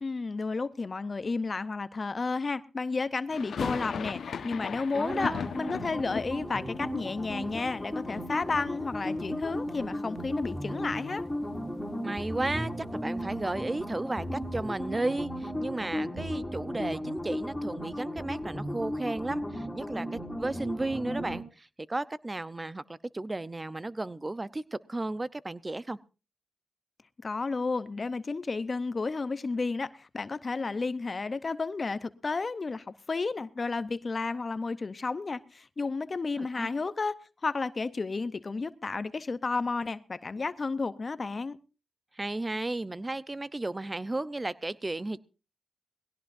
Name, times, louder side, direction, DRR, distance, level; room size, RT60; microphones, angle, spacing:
voice 1, 0.0-11.2 27.2-37.2 37.4-41.6, left 4 dB, 45° left, 0.7 m, -32 dB
sound 1, 3.3-9.3 9.5-10.4 10.6-10.7 11.0-13.1, left 6 dB, 75° left, 1.1 m, -39 dB
voice 2, 4.9-5.4 12.0-22.8 23.1-26.0 36.4-36.7 42.2-45.2, right 2 dB, 25° right, 0.7 m, -34 dB
sound 2, 5.4-21.4, equal, 10° left, 4.4 m, -35 dB
20.5 x 17.0 x 2.6 m
supercardioid pair, 50°, 0 cm